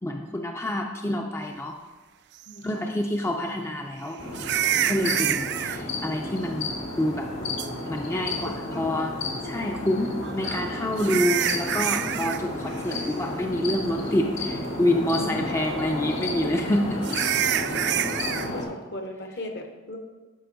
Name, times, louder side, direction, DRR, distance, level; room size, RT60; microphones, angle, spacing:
voice 1, 0.0-1.8 2.6-4.2 4.9-7.3 7.9-9.1 9.4-17.0 17.7-17.8, left 1 dB, 15° left, 2 dB, 0.4 m, -27 dB
voice 2, 2.5-2.9 5.0-5.5 8.4-8.9 15.1-15.7 18.5-20.0, left 1 dB, 55° left, 5 dB, 0.9 m, -39 dB
sound 1, 2.5-2.6 4.3-5.8 7.6-7.7 10.2-12.4 12.7-13.0 13.4-13.5 14.1-14.2 17.0-18.5, right 11 dB, 55° right, 0.3 m, -27 dB
sound 2, 4.2-18.6, left 2 dB, 80° left, 1.7 m, -32 dB
11.5 x 5.3 x 3.9 m, 1.3 s
head